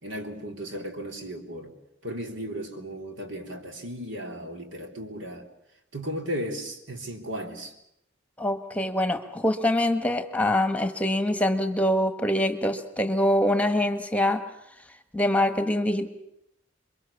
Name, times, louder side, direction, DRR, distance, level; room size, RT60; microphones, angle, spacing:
voice 1, 0.0-1.8 2.0-5.5 5.9-7.7, equal, 80° right, 3 dB, 3.5 m, -35 dB
voice 2, 8.4-14.4 15.1-16.1, left 1 dB, 10° left, 8 dB, 1.5 m, -24 dB
28.5 x 23.0 x 7.1 m, 0.78 s
head